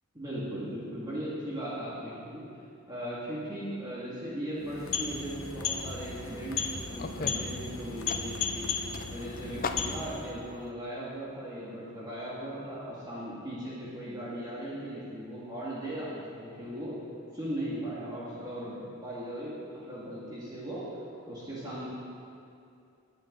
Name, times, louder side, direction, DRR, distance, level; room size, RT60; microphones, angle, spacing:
voice 1, 0.1-2.4 2.9-6.6 6.9-17.0 17.3-20.8 21.3-21.9, right 1 dB, 20° right, -8 dB, 2.0 m, -38 dB
sound 1, 4.6-10.4, left 6 dB, 65° left, 1.0 m, -35 dB
sound 2, 5.4-10.7, left 4 dB, 40° left, 0.4 m, -42 dB
18.5 x 8.4 x 3.9 m, 2.5 s
head